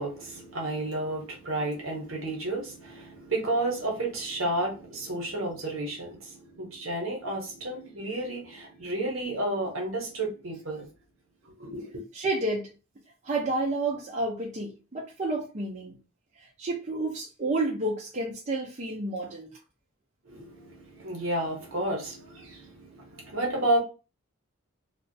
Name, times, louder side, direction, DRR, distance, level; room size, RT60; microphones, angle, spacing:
voice 1, 0.0-10.9 11.6-12.0 20.2-23.8, right 1 dB, 65° right, 0.9 m, -31 dB
voice 2, 12.1-12.7 13.2-16.0 16.6-19.5, right 2 dB, 35° right, 0.5 m, -30 dB
2.3 x 2.0 x 2.6 m
head